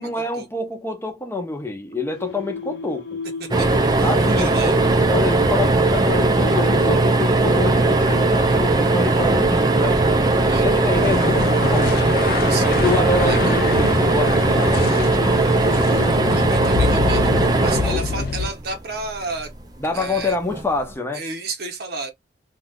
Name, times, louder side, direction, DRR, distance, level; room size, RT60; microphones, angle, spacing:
voice 1, 0.0-3.2 4.0-4.6 5.1-10.0 10.6-12.0 12.7-15.5 17.8-18.2 19.8-21.2, left 2 dB, 15° left, 0.7 m, -27 dB
Singing, 2.1-16.2, left 4 dB, 75° left, 0.8 m, -37 dB
sound 1, 3.5-18.8 20.4-20.6 20.9-21.0, right 2 dB, 20° right, 0.5 m, -18 dB
voice 2, 4.0-4.8 10.4-10.7 12.5-13.6 16.3-19.5 19.9-20.4 21.1-22.1, right 4 dB, 60° right, 0.8 m, -32 dB
sound 2, 11.0-18.5, left 5 dB, 55° left, 0.3 m, -26 dB
2.7 x 2.4 x 3.5 m
head